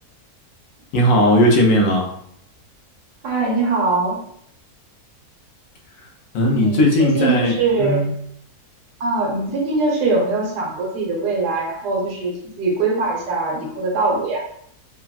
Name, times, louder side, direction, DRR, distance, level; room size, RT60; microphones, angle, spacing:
voice 1, 0.9-2.1 6.3-8.1, equal, 65° left, 0 dB, 0.9 m, -17 dB
voice 2, 3.2-4.2 6.5-8.0 9.0-14.4, right 3 dB, 85° right, -1 dB, 1.3 m, -22 dB
3.3 x 2.2 x 2.3 m, 0.68 s
omnidirectional pair, 1.7 m